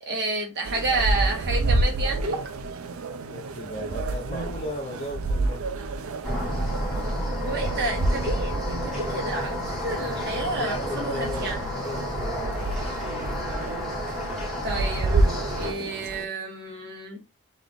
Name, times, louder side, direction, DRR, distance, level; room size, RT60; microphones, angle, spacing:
voice 1, 0.0-2.4 7.4-11.6 14.6-17.2, right 2 dB, 50° right, 1.5 m, -30 dB
sound 1, 0.6-16.3, right 2 dB, 85° right, 0.5 m, -29 dB
voice 2, 3.3-5.7 10.6-12.7, left 1 dB, 30° left, 0.6 m, -36 dB
sound 2, 6.2-15.7, left 1 dB, ahead, 1.7 m, -31 dB
3.8 x 3.0 x 3.6 m
head